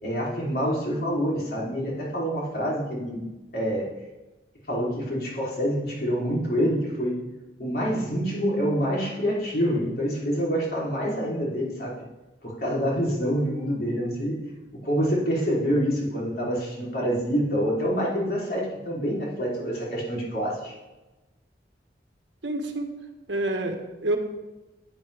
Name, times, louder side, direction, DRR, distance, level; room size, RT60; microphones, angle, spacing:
voice 1, 0.0-3.2 3.5-3.8 4.7-7.2 7.6-12.0 12.4-14.4 14.8-20.7, equal, 55° left, -5 dB, 3.6 m, -26 dB
voice 2, 22.4-22.9 23.3-24.2, right 2 dB, 75° right, 4 dB, 1.5 m, -28 dB
13.5 x 9.3 x 3.5 m, 1.1 s
head